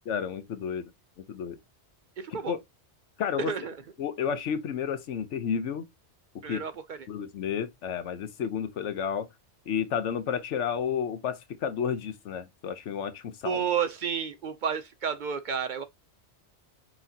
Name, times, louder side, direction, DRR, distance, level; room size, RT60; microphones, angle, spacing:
voice 1, 0.1-0.8 1.3-1.6 2.5-2.6 3.2-3.5 4.0-5.9 6.5-6.6 7.1-9.3 9.7-13.6, left 7 dB, 85° left, 1.0 m, -31 dB
voice 2, 2.2-2.6 3.4-3.8 6.4-7.1 13.4-15.8, right 7 dB, 55° right, 0.6 m, -31 dB
5.7 x 3.0 x 2.7 m
omnidirectional pair, 1.2 m